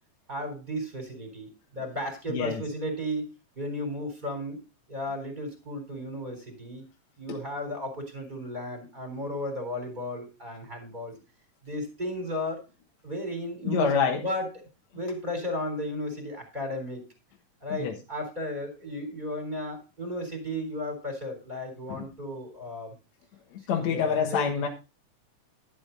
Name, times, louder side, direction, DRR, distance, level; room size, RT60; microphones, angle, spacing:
voice 1, 0.3-3.3 3.6-4.6 4.9-6.8 7.2-11.1 11.6-12.6 13.0-14.5 14.9-17.1 17.6-22.9 23.8-24.5, left 1 dB, 15° right, 4 dB, 3.9 m, -34 dB
voice 2, 2.3-2.6 7.3-7.4 13.6-14.2 17.7-17.9 21.9-22.0 23.5-24.7, left 6 dB, 70° left, 1 dB, 2.7 m, -27 dB
12.5 x 8.4 x 4.0 m, 0.30 s
omnidirectional pair, 3.3 m